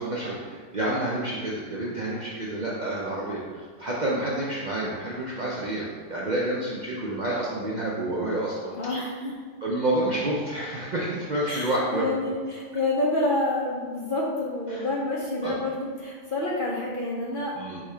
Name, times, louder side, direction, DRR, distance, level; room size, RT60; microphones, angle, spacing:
voice 1, 0.0-8.8 9.6-12.1 14.7-14.8 15.4-15.6 17.5-17.8, right 1 dB, 55° right, -5 dB, 0.5 m, -29 dB
voice 2, 8.7-9.3 11.5-17.6, left 2 dB, 55° left, -4 dB, 0.6 m, -28 dB
5.1 x 2.4 x 4.2 m, 1.5 s
omnidirectional pair, 1.4 m